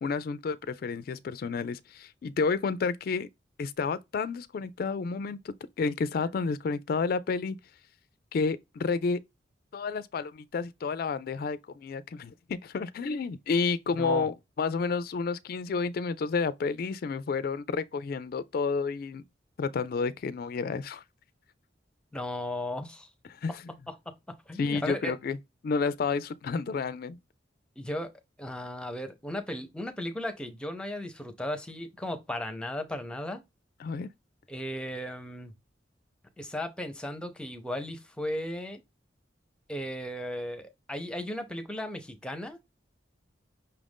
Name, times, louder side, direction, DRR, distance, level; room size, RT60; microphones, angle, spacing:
voice 1, 0.0-3.3 3.6-7.6 8.3-9.2 9.7-19.2 19.6-21.0 23.3-23.6 24.6-25.4 25.6-27.2 33.8-34.1, left 4 dB, 55° left, 0.3 m, -30 dB
voice 2, 22.1-23.1 23.9-24.1 24.5-25.1 27.8-28.1 28.4-33.4 34.5-35.5 36.4-38.8 39.7-42.6, left 1 dB, 5° left, 0.6 m, -36 dB
5.7 x 2.5 x 3.4 m
head